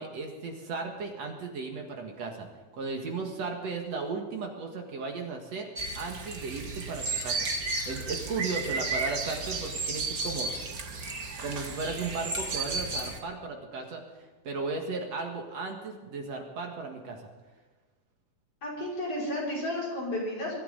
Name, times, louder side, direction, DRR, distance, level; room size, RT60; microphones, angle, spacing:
voice 1, 0.0-2.5 2.7-5.7 6.0-7.5 7.9-10.5 11.4-14.0 14.4-17.3, right 4 dB, 60° right, 2 dB, 2.7 m, -35 dB
sound 1, 5.8-13.2, right 3 dB, 35° right, 1.7 m, -33 dB
voice 2, 18.6-20.6, left 1 dB, 50° left, -6 dB, 6.9 m, -32 dB
24.0 x 13.5 x 4.0 m, 1.3 s
omnidirectional pair, 3.5 m